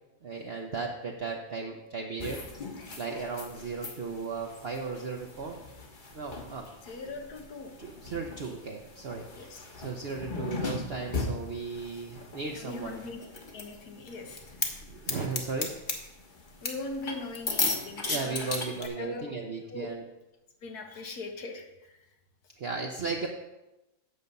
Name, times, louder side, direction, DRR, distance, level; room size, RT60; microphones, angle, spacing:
voice 1, 0.2-2.4 3.0-5.6 6.1-6.7 7.8-9.5 9.7-13.0 14.8-15.7 18.0-20.0 22.6-23.3, right 4 dB, 50° right, 1 dB, 0.9 m, -36 dB
sound 1, 2.2-18.9, left 3 dB, 35° left, 1.1 m, -37 dB
voice 2, 6.8-7.7 9.3-9.7 12.5-13.2 13.5-14.6 16.6-19.4 19.7-19.9 20.6-22.0 22.4-22.5, left 3 dB, 90° left, 3 dB, 1.7 m, -40 dB
8.4 x 6.9 x 5.3 m, 0.98 s
omnidirectional pair, 1.6 m